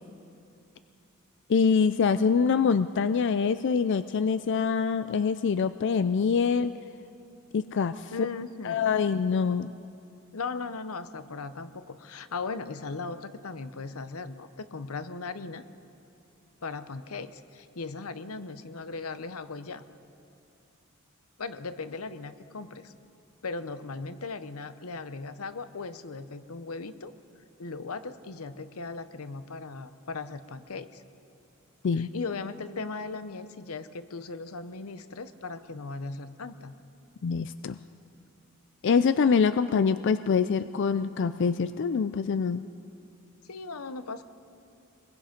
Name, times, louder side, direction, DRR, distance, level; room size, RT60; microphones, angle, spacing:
voice 1, 1.5-6.7 7.5-8.1 8.6-9.7 31.8-32.1 37.2-37.8 38.8-42.6, left 5 dB, 60° left, 12 dB, 0.4 m, -25 dB
voice 2, 8.1-8.9 10.3-15.6 16.6-19.8 21.4-22.9 23.4-27.1 27.6-31.0 32.0-36.7 43.5-44.2, left 4 dB, 90° left, 12 dB, 0.8 m, -38 dB
24.5 x 21.0 x 5.2 m, 2.6 s
head